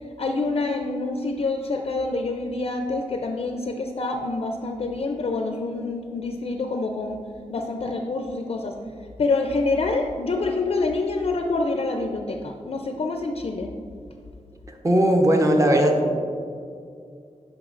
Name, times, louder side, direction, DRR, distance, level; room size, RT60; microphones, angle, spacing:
voice 1, 0.2-7.2 7.5-8.8 9.2-13.7, left 3 dB, 50° left, 3 dB, 0.4 m, -26 dB
voice 2, 14.7-16.2, right 1 dB, 25° right, 2 dB, 0.8 m, -19 dB
8.7 x 5.7 x 2.5 m, 2.3 s
wide cardioid pair, 105°, 12 cm